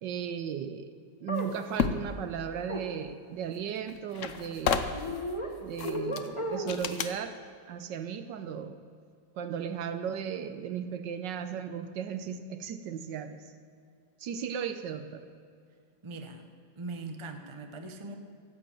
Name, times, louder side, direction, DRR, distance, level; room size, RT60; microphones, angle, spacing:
voice 1, 0.0-0.9 1.2-5.0 5.6-7.4 7.7-8.8 9.4-13.5 14.2-15.3, right 8 dB, 70° right, 10 dB, 1.3 m, -36 dB
sound 1, 1.3-1.5 2.7-2.8 4.9-5.5 5.8-6.8, equal, 20° left, 1.0 m, -34 dB
sound 2, 1.4-2.1 3.6-3.7 3.9-5.2 5.8-6.3 6.7-7.2, left 7 dB, 60° left, 0.8 m, -31 dB
voice 2, 16.0-16.4 16.8-18.1, right 3 dB, 25° right, 5 dB, 0.7 m, -40 dB
15.5 x 8.3 x 8.7 m, 2.3 s
omnidirectional pair, 2.1 m